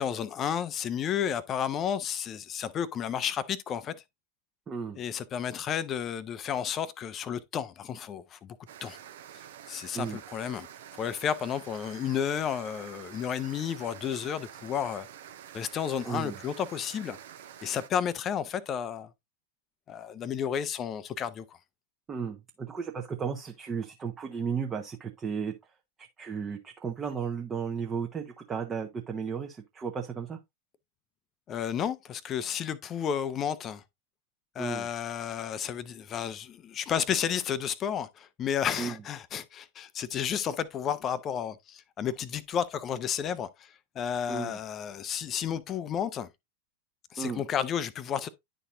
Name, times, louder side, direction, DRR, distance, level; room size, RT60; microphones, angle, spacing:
voice 1, 0.0-3.9 5.0-9.0 9.7-10.7 10.9-15.1 15.5-17.2 17.6-19.1 19.9-21.6 31.5-33.8 34.5-46.3 47.1-48.3, left 8 dB, 30° left, 0.6 m, -32 dB
voice 2, 4.7-5.0 9.9-10.2 16.0-16.3 22.1-25.5 26.2-30.4 34.6-34.9 38.8-38.9 44.3-44.6 47.2-47.4, right 6 dB, 20° right, 1.0 m, -34 dB
sound 1, 8.7-17.9, right 10 dB, 60° right, 0.9 m, -48 dB
11.0 x 4.1 x 2.5 m
figure-of-eight pair, 90°, 0 cm